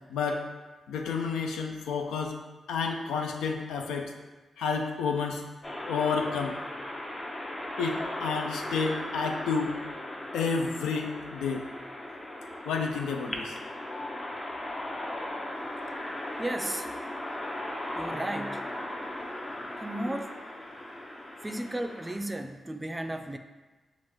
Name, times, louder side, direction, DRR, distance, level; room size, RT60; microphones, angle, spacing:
voice 1, 0.1-0.4 0.9-2.3 2.7-4.1 4.6-5.4 5.9-6.6 7.8-9.8 10.3-11.7 12.7-13.5, left 5 dB, 85° left, 3 dB, 0.4 m, -30 dB
sound 1, 5.6-22.2, left 1 dB, 35° left, 0.7 m, -37 dB
voice 2, 16.4-16.9 18.0-18.6 19.8-20.4 21.4-23.4, right 1 dB, 20° right, 6 dB, 0.4 m, -34 dB
5.9 x 2.4 x 3.1 m, 1.2 s
supercardioid pair, 45°, 0 cm